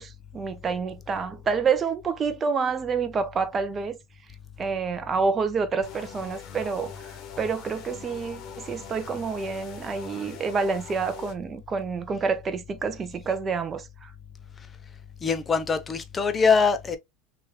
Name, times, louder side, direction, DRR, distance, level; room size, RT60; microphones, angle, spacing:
voice 1, 0.0-4.0 4.6-14.1, right 5 dB, 25° right, 0.6 m, -28 dB
sound 1, 5.8-11.3, left 7 dB, 50° left, 0.8 m, -42 dB
voice 2, 15.2-17.0, left 5 dB, 20° left, 0.5 m, -23 dB
3.0 x 2.4 x 3.1 m
supercardioid pair, 115°, 0 cm